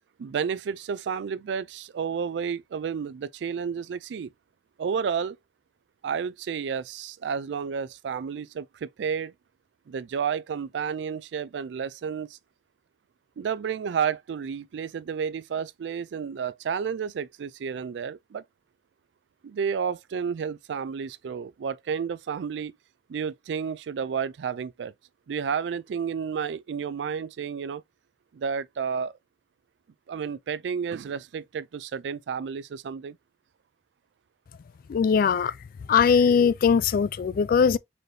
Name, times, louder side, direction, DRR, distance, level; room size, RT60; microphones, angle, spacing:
voice 1, 0.2-4.3 4.8-5.4 6.0-9.3 9.9-12.4 13.4-18.4 19.4-22.7 23.1-24.9 25.3-27.8 28.3-29.1 30.1-33.2, right 6 dB, 80° right, 0.3 m, -31 dB
voice 2, 34.9-35.5 35.9-37.8, left 6 dB, 55° left, 0.3 m, -20 dB
4.2 x 3.2 x 2.7 m
head